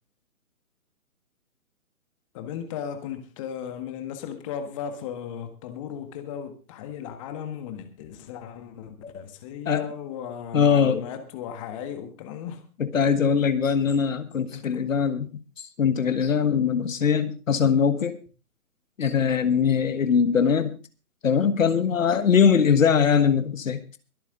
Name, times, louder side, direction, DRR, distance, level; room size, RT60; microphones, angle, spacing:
voice 1, 2.3-12.6 14.5-14.9, left 8 dB, 20° left, 1.6 m, -36 dB
voice 2, 10.5-11.0 12.8-15.3 15.6-18.2 19.0-20.8 21.2-23.8, left 7 dB, 60° left, 1.5 m, -21 dB
23.0 x 8.9 x 3.8 m
hypercardioid pair, 155°, 44 cm